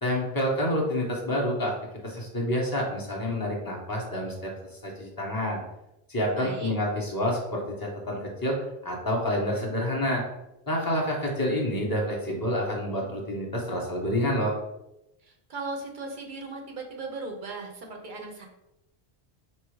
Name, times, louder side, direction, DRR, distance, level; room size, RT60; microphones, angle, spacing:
voice 1, 0.0-1.7 2.0-4.5 4.8-5.6 6.1-10.2 10.7-14.5, equal, 20° left, -2 dB, 1.1 m, -28 dB
voice 2, 6.3-6.7 15.2-18.5, right 3 dB, 55° right, 2 dB, 1.0 m, -37 dB
5.7 x 2.0 x 4.7 m, 0.92 s
omnidirectional pair, 1.0 m